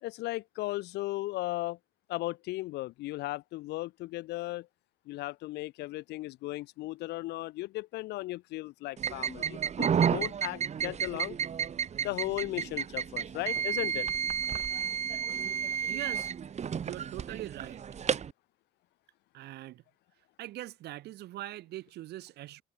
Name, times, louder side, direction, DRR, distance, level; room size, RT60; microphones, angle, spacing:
voice 1, 0.0-1.8 2.1-4.7 5.1-11.4 12.0-14.1, left 18 dB, 80° left, 1.3 m, -36 dB
sound 1, 9.0-18.3, right 7 dB, 40° right, 3.3 m, -32 dB
voice 2, 15.9-16.3 16.8-17.8 19.3-19.8 20.4-22.6, right 15 dB, 75° right, 4.1 m, -42 dB
cardioid pair, 110°, 17 cm